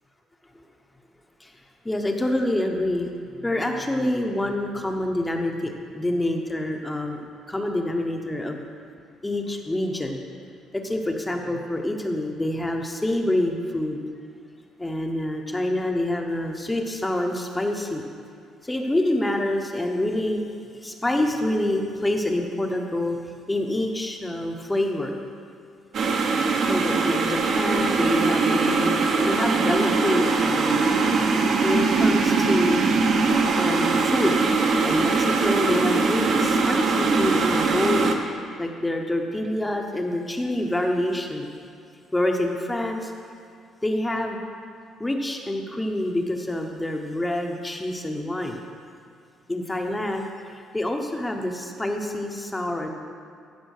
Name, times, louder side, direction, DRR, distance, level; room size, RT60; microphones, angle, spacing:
voice 1, 1.8-3.1 3.4-8.6 9.2-10.2 10.7-14.0 14.8-18.0 18.6-20.5 20.8-23.2 23.5-25.2 26.7-30.9 31.6-32.8 33.5-34.4 34.8-38.1 38.6-41.5 42.1-43.1 43.8-44.4 45.0-48.6 49.5-52.9, left 1 dB, 10° left, 3 dB, 0.8 m, -26 dB
sound 1, 25.9-38.1, right 4 dB, 50° right, 0.9 m, -21 dB
14.5 x 5.5 x 6.5 m, 2.3 s
cardioid pair, 145°, 0 cm